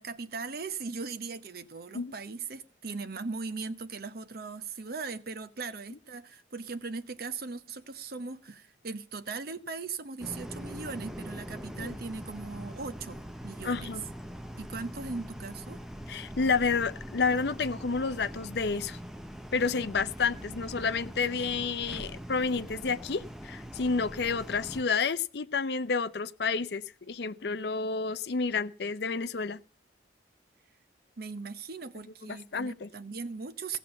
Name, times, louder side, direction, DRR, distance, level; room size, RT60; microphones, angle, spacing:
voice 1, 0.0-14.0 14.6-15.8 31.2-33.8, right 4 dB, 55° right, 0.8 m, -39 dB
sound 1, 10.2-24.8, equal, ahead, 0.7 m, -42 dB
voice 2, 13.6-14.0 16.1-19.0 19.5-29.6 32.5-32.9, left 4 dB, 60° left, 0.6 m, -30 dB
16.5 x 7.1 x 6.9 m
head